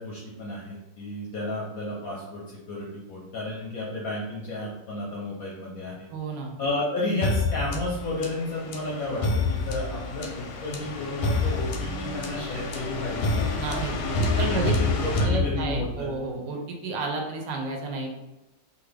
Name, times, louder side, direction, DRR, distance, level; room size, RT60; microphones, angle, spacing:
voice 1, 0.0-6.1 6.6-13.4 13.9-16.1, left 2 dB, 65° left, -4 dB, 0.9 m, -32 dB
voice 2, 6.1-6.6 13.6-13.9 14.4-14.7 15.2-18.2, right 3 dB, 75° right, 1 dB, 1.2 m, -31 dB
sound 1, 7.2-16.1, left 3 dB, 85° left, 1.4 m, -28 dB
3.2 x 2.4 x 3.2 m, 0.99 s
omnidirectional pair, 2.1 m